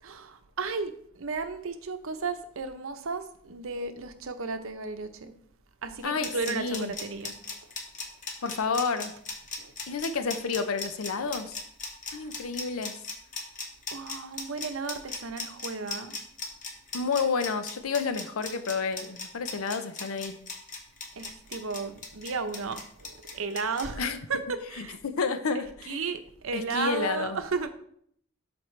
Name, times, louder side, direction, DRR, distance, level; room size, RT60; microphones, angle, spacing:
voice 1, 0.0-5.3 5.8-7.6 9.6-9.7 12.1-12.3 13.9-16.2 21.1-25.0 25.5-27.7, right 4 dB, 70° right, 0.8 m, -34 dB
voice 2, 6.0-6.9 8.4-9.1 9.9-11.6 12.1-13.0 16.9-20.4 24.0-24.2 25.0-26.0 26.5-27.4, left 5 dB, 75° left, 0.6 m, -30 dB
sound 1, 6.0-23.9, left 4 dB, 35° left, 1.2 m, -37 dB
12.5 x 4.4 x 3.2 m
head